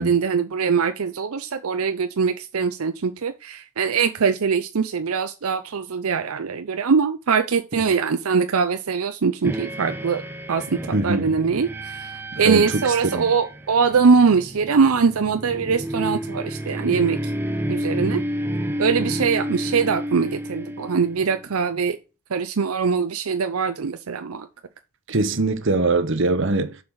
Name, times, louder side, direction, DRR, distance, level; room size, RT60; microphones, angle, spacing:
voice 1, 0.0-17.3 17.7-18.2 18.8-22.0 22.3-24.5, right 5 dB, 80° right, 0.6 m, -22 dB
sound 1, 9.4-21.5, equal, 10° right, 0.6 m, -30 dB
voice 2, 10.9-11.3 12.3-13.3 25.1-26.8, right 3 dB, 55° right, 0.9 m, -22 dB
7.1 x 4.8 x 6.3 m
head